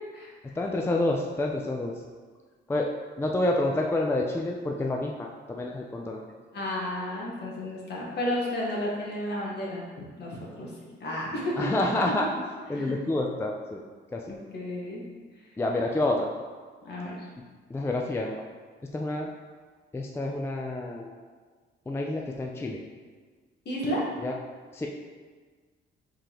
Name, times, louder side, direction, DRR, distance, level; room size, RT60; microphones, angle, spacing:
voice 1, 0.6-1.9 2.7-2.9 3.2-6.2 11.6-12.3 12.7-13.8 14.1-14.2 15.6-16.3 17.7-18.4 18.9-19.3 19.9-21.2 21.9-22.8 24.2-24.3 24.7-24.9, left 2 dB, 10° left, 1 dB, 0.4 m, -28 dB
voice 2, 6.5-9.9 10.2-10.7 11.0-11.7 12.7-12.9 14.5-15.0 16.8-17.3 23.6-24.1, left 1 dB, 60° left, -4 dB, 1.4 m, -32 dB
4.9 x 3.8 x 2.9 m, 1.5 s
cardioid pair, 90°, 20 cm